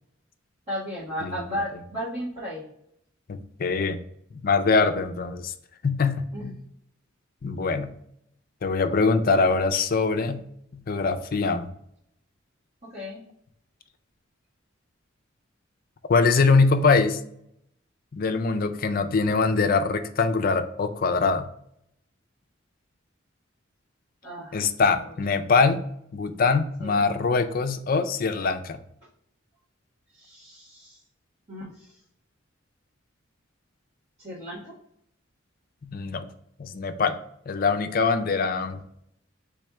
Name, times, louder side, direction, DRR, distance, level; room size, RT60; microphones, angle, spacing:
voice 1, 0.7-2.6 6.3-6.5 12.9-13.2 24.2-24.7 25.0-25.1 26.8-27.0 30.1-31.0 31.5-32.0 34.2-34.7, equal, 35° right, -12 dB, 1.6 m, -35 dB
voice 2, 3.3-4.0 4.3-5.5 5.8-6.5 7.4-7.9 8.6-10.4 10.7-11.7 16.1-17.2 18.1-21.5 24.5-25.9 26.1-28.8 35.8-36.3 36.6-37.2 37.5-38.8, left 4 dB, 45° left, 8 dB, 0.4 m, -23 dB
3.4 x 3.3 x 4.7 m, 0.73 s
head